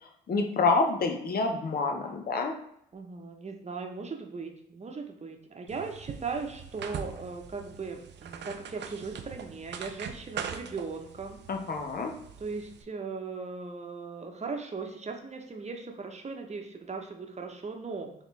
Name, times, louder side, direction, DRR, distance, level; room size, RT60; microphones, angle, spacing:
voice 1, 0.0-2.5 11.5-12.1, left 3 dB, 50° left, 3 dB, 0.9 m, -28 dB
voice 2, 2.9-11.4 12.4-18.1, right 4 dB, 35° right, 3 dB, 1.0 m, -38 dB
sound 1, 5.7-12.8, right 7 dB, 60° right, 0.5 m, -42 dB
4.0 x 3.2 x 3.3 m, 0.74 s
hypercardioid pair, 45°, 21 cm